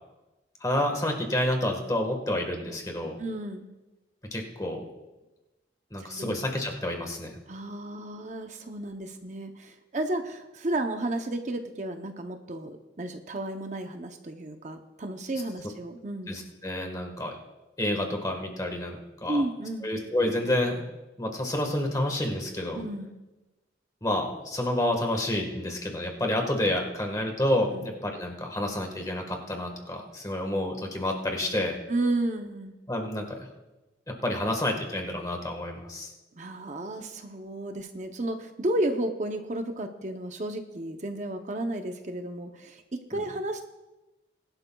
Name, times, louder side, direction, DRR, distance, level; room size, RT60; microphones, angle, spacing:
voice 1, 0.6-3.2 4.3-4.8 5.9-7.4 16.3-17.3 17.8-19.4 19.8-20.8 21.2-22.8 24.0-31.8 32.9-33.5 34.1-36.1, left 1 dB, 20° left, 3 dB, 1.4 m, -29 dB
voice 2, 3.2-3.7 6.0-6.4 7.5-16.5 19.3-19.9 22.8-23.2 27.7-27.9 31.9-32.8 36.3-43.6, right 1 dB, 40° right, 5 dB, 0.7 m, -32 dB
20.5 x 11.5 x 2.3 m, 1.1 s
head